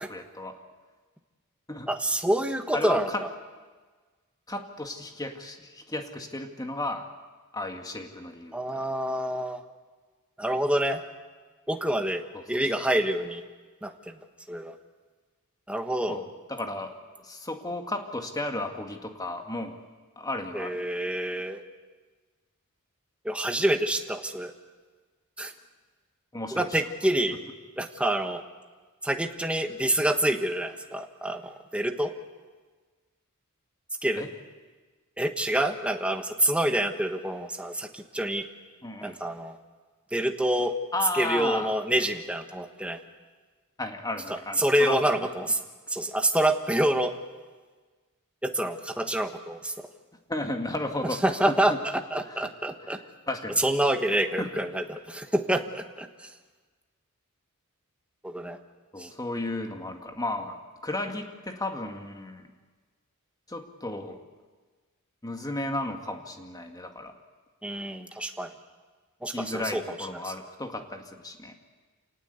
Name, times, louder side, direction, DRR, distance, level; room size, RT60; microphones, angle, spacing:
voice 1, 0.1-0.6 1.7-1.9 2.7-3.2 4.5-7.1 7.5-8.8 12.3-12.8 16.1-19.8 20.2-20.8 26.3-26.8 34.2-34.3 38.8-39.2 40.9-41.8 43.8-45.3 50.3-51.2 51.5-51.8 52.2-52.5 53.3-53.6 54.4-54.5 58.9-62.5 63.5-64.2 65.2-67.1 69.3-71.5, left 2 dB, 15° left, 5 dB, 2.0 m, -34 dB
voice 2, 1.9-3.3 8.5-9.6 10.4-11.0 11.7-13.4 13.8-14.1 14.5-14.7 15.7-16.2 20.5-21.6 23.2-24.5 25.4-25.5 26.5-27.4 27.8-28.4 29.0-32.1 34.0-34.2 35.2-38.4 39.0-39.6 40.1-40.7 41.1-43.0 44.6-45.6 45.9-47.1 48.4-49.9 51.2-53.0 53.6-56.1 58.2-58.6 59.0-59.1 67.6-68.5 69.2-69.8 70.2-70.3, right 1 dB, 5° right, 6 dB, 1.4 m, -27 dB
27.5 x 18.5 x 8.2 m, 1.4 s
head